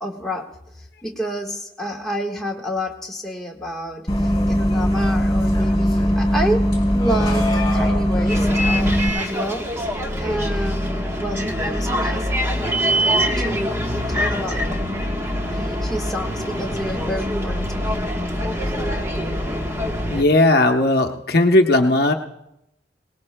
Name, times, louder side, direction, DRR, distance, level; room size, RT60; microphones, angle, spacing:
voice 1, 0.0-0.4 0.7-6.6 6.9-9.6 10.2-12.6 12.9-13.8 14.1-14.6 15.1-18.0, equal, ahead, -2 dB, 1.4 m, -29 dB
Bus, 4.1-9.1, equal, 20° left, 3.1 m, -19 dB
Bus 2, 8.3-20.2, equal, 15° right, 1.2 m, -24 dB
voice 2, 20.1-22.1, left 2 dB, 60° left, 4 dB, 0.8 m, -16 dB
22.0 x 19.0 x 2.2 m, 0.85 s
head